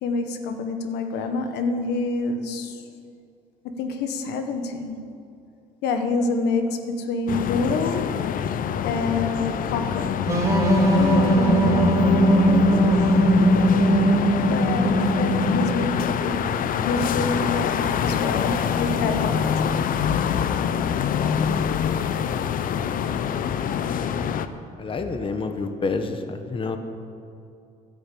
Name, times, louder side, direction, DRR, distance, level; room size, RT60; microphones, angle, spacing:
voice 1, 0.0-2.8 3.6-5.0 5.8-8.2 8.8-10.3 10.9-13.2 14.4-16.5 16.7-19.5, left 3 dB, 80° left, 7 dB, 1.4 m, -27 dB
sound 1, 7.3-24.5, left 8 dB, 55° left, 0.7 m, -25 dB
sound 2, 10.3-15.9, right 1 dB, 20° right, 4.1 m, -19 dB
voice 2, 24.8-26.8, left 4 dB, 30° left, 7 dB, 1.2 m, -28 dB
12.5 x 10.0 x 8.5 m, 2.5 s
cardioid pair, 110°, 17 cm